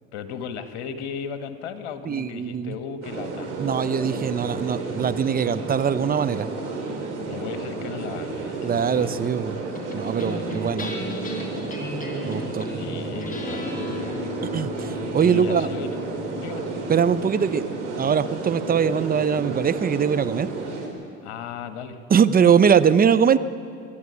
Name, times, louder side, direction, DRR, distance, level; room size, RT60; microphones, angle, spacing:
voice 1, 0.1-3.5 7.2-9.1 10.5-10.8 12.7-14.3 15.2-16.1 16.4-16.6 21.2-22.0, left 7 dB, 70° left, 9 dB, 1.8 m, -36 dB
voice 2, 2.1-2.8 3.6-6.5 8.6-9.6 9.9-10.9 12.3-12.7 14.4-15.7 16.9-17.7 18.0-20.5 22.1-23.4, right 7 dB, 25° right, 14 dB, 0.8 m, -21 dB
sound 1, 3.0-20.9, right 3 dB, 80° right, 3.9 m, -32 dB
sound 2, 9.7-20.3, left 2 dB, 25° left, 4.8 m, -36 dB
24.5 x 11.0 x 9.7 m, 2.6 s
hypercardioid pair, 80°, 34 cm